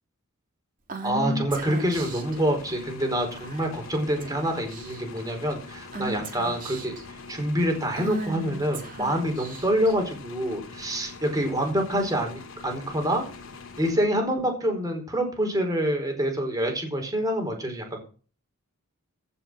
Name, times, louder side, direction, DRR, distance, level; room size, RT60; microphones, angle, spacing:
Female speech woman speaking / Whispering, 0.9-2.4 3.4-3.8 4.2-4.4 4.7-5.2 5.9-7.0 7.9-9.9, right 2 dB, 35° right, 3.1 m, -35 dB
voice 1, 1.0-13.2 13.8-18.0, equal, 15° right, 3 dB, 4.4 m, -26 dB
sound 1, 1.5-14.5, left 4 dB, 60° left, 2.8 m, -44 dB
15.5 x 6.9 x 6.3 m, 0.38 s
head